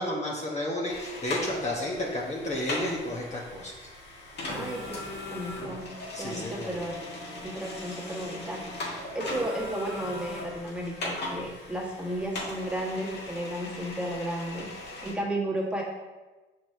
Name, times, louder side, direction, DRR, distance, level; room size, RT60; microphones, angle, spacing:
voice 1, 0.0-3.7 6.1-6.8, left 1 dB, 35° left, -3 dB, 1.0 m, -32 dB
sound 1, 0.9-15.1, left 1 dB, 60° left, 1.7 m, -39 dB
voice 2, 4.5-5.0 5.3-5.9 6.2-6.9 7.4-8.6 9.1-14.7 15.0-15.8, right 1 dB, 5° right, -4 dB, 1.6 m, -33 dB
5.9 x 4.8 x 3.4 m, 1.2 s
cardioid pair, 90°, 20 cm